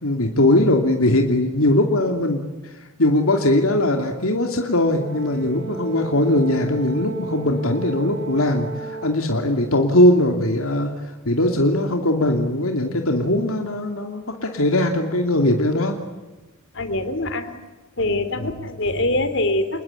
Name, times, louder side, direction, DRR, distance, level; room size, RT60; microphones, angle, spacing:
voice 1, 0.0-10.9 11.2-16.0 18.4-18.5, left 1 dB, 75° left, 3 dB, 2.8 m, -20 dB
Brass instrument, 5.0-9.2, right 4 dB, 55° right, 6.2 m, -33 dB
voice 2, 16.7-17.5 18.0-19.8, left 2 dB, 60° left, 11 dB, 3.2 m, -24 dB
28.5 x 21.0 x 9.9 m, 1.2 s
head